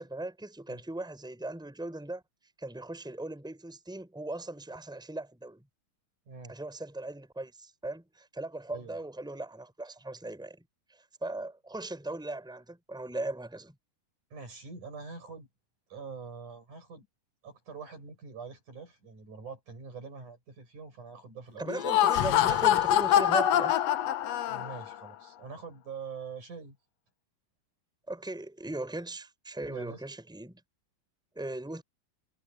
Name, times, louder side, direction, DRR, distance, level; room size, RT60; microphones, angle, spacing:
voice 1, 0.0-2.2 2.6-5.6 6.5-10.6 11.2-13.7 21.6-23.8 28.1-30.6 31.3-31.8, right 2 dB, ahead, 6.1 m, -38 dB
voice 2, 14.3-15.5 15.9-17.1 17.4-21.8 24.5-26.8 29.7-30.0, right 5 dB, 55° right, 8.9 m, -44 dB
Laughter, 21.7-24.9, left 11 dB, 80° left, 1.5 m, -25 dB
omnidirectional pair, 4.3 m